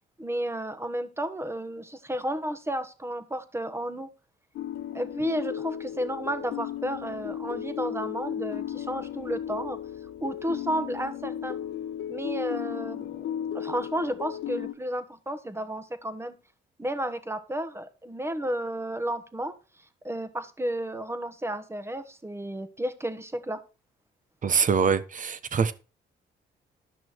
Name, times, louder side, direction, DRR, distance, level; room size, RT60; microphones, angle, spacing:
voice 1, 0.2-4.1 4.9-9.8 10.2-11.6 12.1-16.3 16.8-19.5 20.0-23.6, right 1 dB, 10° right, 1.4 m, -32 dB
sound 1, 4.5-14.7, left 10 dB, 85° left, 0.9 m, -35 dB
voice 2, 24.4-25.7, right 6 dB, 40° right, 1.1 m, -24 dB
12.5 x 6.0 x 4.6 m
cardioid pair, 90°, 20 cm